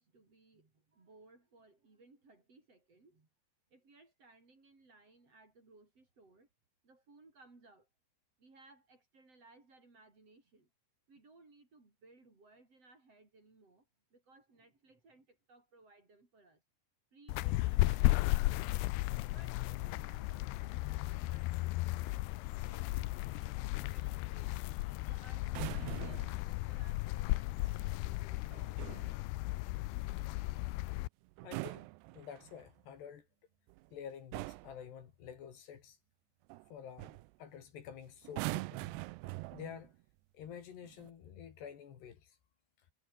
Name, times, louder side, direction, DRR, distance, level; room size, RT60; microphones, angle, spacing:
voice 1, 0.0-3.3 3.7-6.5 6.8-7.9 8.4-10.7 11.1-16.6 17.1-18.6 19.3-22.3 22.6-28.6, right 3 dB, 30° right, 6.0 m, -63 dB
sound 1, 17.3-31.1, left 20 dB, 85° left, 2.3 m, -35 dB
sound 2, 25.4-26.4 28.5-29.1 31.3-32.7 33.7-33.9 34.3-34.8 36.5-36.7 37.0-37.3 38.2-39.9 40.8-41.1, right 22 dB, 90° right, 2.3 m, -42 dB
voice 2, 31.4-31.9 32.1-33.3 33.9-36.0 36.7-39.0 39.5-39.9 40.3-42.4, left 8 dB, 65° left, 4.5 m, -49 dB
omnidirectional pair, 5.5 m